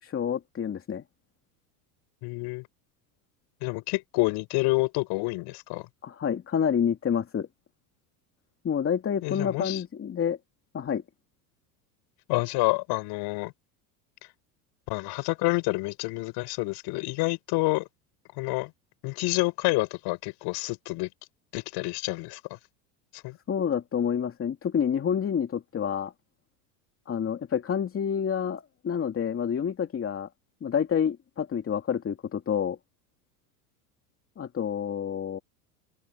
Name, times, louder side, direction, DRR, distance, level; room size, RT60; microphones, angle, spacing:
voice 1, 0.0-1.0 6.0-7.5 8.6-10.4 10.7-11.0 23.5-26.1 27.1-30.3 30.6-32.8 34.4-35.4, left 8 dB, 30° left, 2.9 m, -28 dB
voice 2, 2.2-2.7 3.6-5.9 9.2-9.8 12.3-13.5 14.9-17.9 18.4-18.7 19.0-21.1 21.5-22.4 23.1-23.4, left 23 dB, 60° left, 6.2 m, -28 dB
open air
hypercardioid pair, 100°, 45 cm